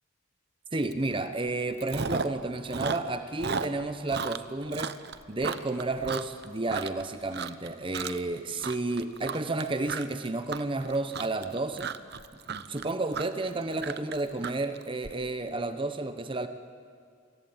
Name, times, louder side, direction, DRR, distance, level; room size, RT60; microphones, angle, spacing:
voice 1, 0.7-4.9 5.3-11.9 12.5-16.5, right 2 dB, 25° right, 9 dB, 0.8 m, -31 dB
Chewing mastication, 0.9-1.1 1.4-2.4 2.7-7.0 7.3-7.7 7.9-8.3 8.6-15.1, right 5 dB, 55° right, 0.9 m, -35 dB
28.0 x 19.5 x 8.9 m, 2.2 s
head